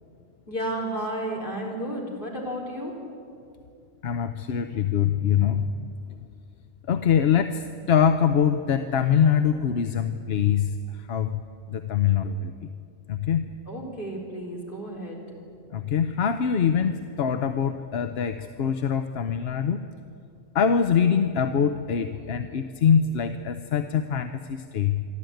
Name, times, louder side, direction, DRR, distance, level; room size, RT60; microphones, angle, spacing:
voice 1, 0.5-2.9 13.7-15.2, right 1 dB, 40° left, -2 dB, 4.2 m, -32 dB
voice 2, 4.0-5.9 6.9-11.4 11.7-12.7 13.1-13.5 15.7-19.8 20.5-25.0, left 7 dB, 60° left, 9 dB, 0.9 m, -24 dB
27.0 x 12.0 x 9.2 m, 2.5 s
omnidirectional pair, 1.3 m